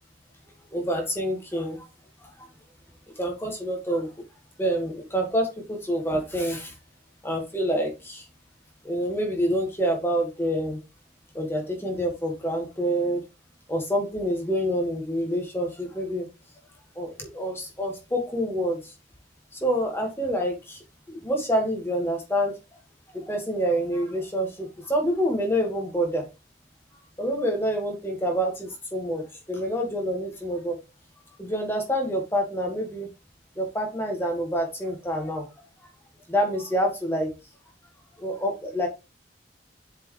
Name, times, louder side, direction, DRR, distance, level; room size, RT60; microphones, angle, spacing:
voice 1, 0.7-1.8 2.2-2.5 3.2-4.1 4.6-6.7 7.2-8.3 8.8-10.8 11.3-13.2 13.7-16.3 17.0-18.9 19.5-20.8 21.1-22.6 23.1-26.2 27.2-30.8 31.4-33.1 33.6-35.5 36.3-37.3 38.2-38.9, equal, 15° left, 1 dB, 1.7 m, -27 dB
7.4 x 4.4 x 3.2 m, 0.27 s
head